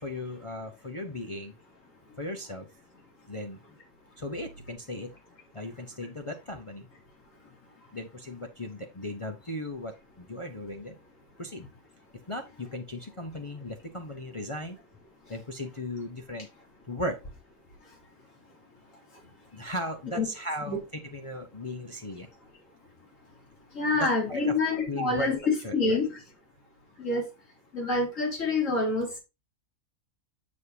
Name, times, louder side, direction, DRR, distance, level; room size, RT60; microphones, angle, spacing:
voice 1, 0.0-1.6 2.2-2.7 3.3-3.6 4.2-5.1 5.5-6.9 7.9-11.0 11.4-11.6 12.1-14.8 15.3-16.5 16.9-17.2 19.5-22.3 24.0-24.4 24.9-25.3 25.6-26.0, left 1 dB, 30° left, 0.7 m, -37 dB
voice 2, 23.7-26.2 27.0-27.3 27.7-29.2, left 3 dB, 60° left, 3.1 m, -27 dB
7.3 x 6.4 x 2.7 m
omnidirectional pair, 1.5 m